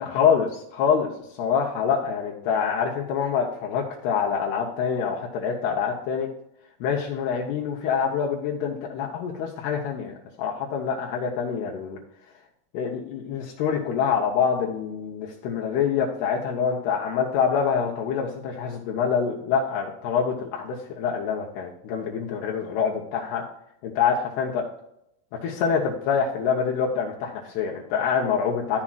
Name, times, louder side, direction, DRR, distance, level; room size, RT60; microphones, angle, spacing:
voice 1, 0.0-6.3 6.8-12.0 12.7-23.4 23.8-24.6 25.4-28.8, left 6 dB, 75° left, -1 dB, 2.7 m, -26 dB
11.0 x 7.2 x 2.4 m, 0.79 s
omnidirectional pair, 5.0 m